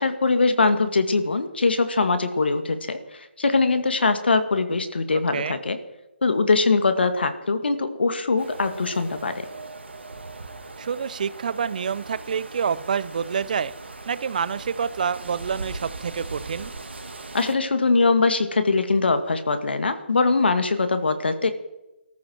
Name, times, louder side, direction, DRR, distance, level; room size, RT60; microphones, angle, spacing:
voice 1, 0.0-5.8 6.2-9.5 17.3-21.5, left 3 dB, 65° left, 9 dB, 2.1 m, -22 dB
sound 1, 8.4-17.5, right 3 dB, 75° right, 2.7 m, -39 dB
voice 2, 10.8-13.7 14.1-16.7, right 6 dB, 45° right, 18 dB, 0.8 m, -27 dB
22.0 x 14.0 x 4.6 m, 0.99 s
figure-of-eight pair, 150°, 6 cm